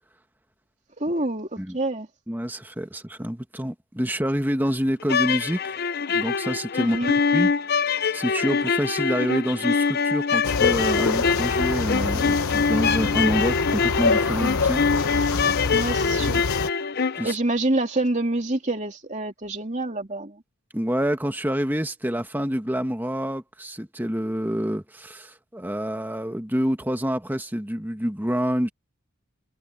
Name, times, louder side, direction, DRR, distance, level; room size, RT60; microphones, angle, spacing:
voice 1, 1.0-1.5 1.7-2.1 6.8-7.1 15.7-16.4 17.2-20.4, right 2 dB, 30° right, 2.8 m, -26 dB
voice 2, 2.3-5.8 6.1-7.0 7.3-7.5 7.8-15.1 17.1-17.4 20.7-28.7, equal, 10° right, 1.4 m, -27 dB
sound 1, 5.0-17.3, left 5 dB, 45° left, 0.7 m, -24 dB
sound 2, 10.4-16.7, left 4 dB, 75° left, 0.9 m, -26 dB
head